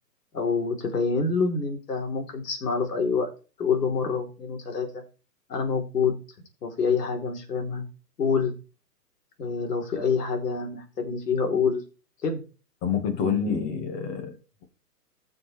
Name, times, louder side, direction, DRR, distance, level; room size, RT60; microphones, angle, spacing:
voice 1, 0.3-3.3 3.6-5.0 5.5-6.2 6.6-7.8 8.2-8.5 9.4-11.8 12.2-12.4 13.2-13.8, left 5 dB, 70° left, 3.8 m, -27 dB
voice 2, 12.8-14.3, left 7 dB, 20° left, 1.8 m, -27 dB
15.5 x 6.5 x 3.4 m
hypercardioid pair, 155°, 49 cm